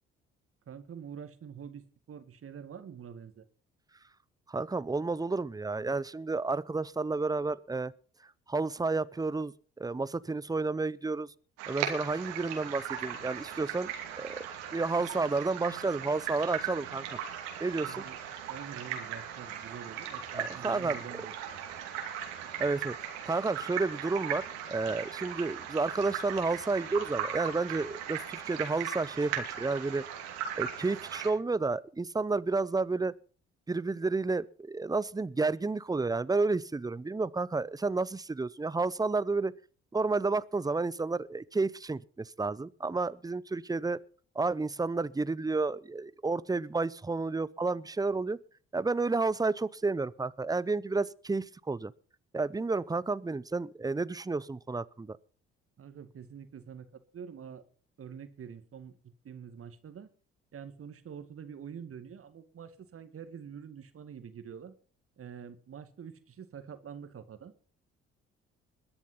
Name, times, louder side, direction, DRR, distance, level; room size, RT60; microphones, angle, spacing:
voice 1, 0.7-3.5 17.8-18.2 18.5-21.3 22.4-22.5 55.8-57.6 58.0-60.1 60.5-64.7 65.2-67.5, right 7 dB, 50° right, 2.1 m, -46 dB
voice 2, 4.5-7.9 8.5-11.3 11.7-14.5 14.7-17.2 17.6-18.0 20.3-21.0 22.6-23.0 23.2-30.0 30.6-33.1 33.7-39.5 39.9-44.0 44.3-48.4 48.7-51.9 52.3-55.2, right 3 dB, 15° right, 0.7 m, -31 dB
sound 1, 11.6-31.3, right 9 dB, 80° right, 2.6 m, -38 dB
21.5 x 7.2 x 5.6 m
hypercardioid pair, 50°, 30 cm